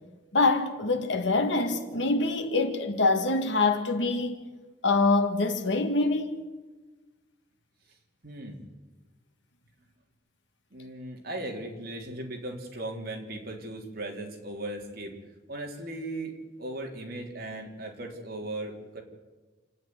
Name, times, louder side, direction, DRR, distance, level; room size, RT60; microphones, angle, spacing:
voice 1, 0.3-4.4 4.8-6.4, left 3 dB, 65° left, 2.0 m, -25 dB
voice 2, 8.2-8.6 10.7-15.2 15.5-19.0, right 1 dB, 55° right, 3.5 m, -37 dB
28.0 x 9.6 x 9.6 m
head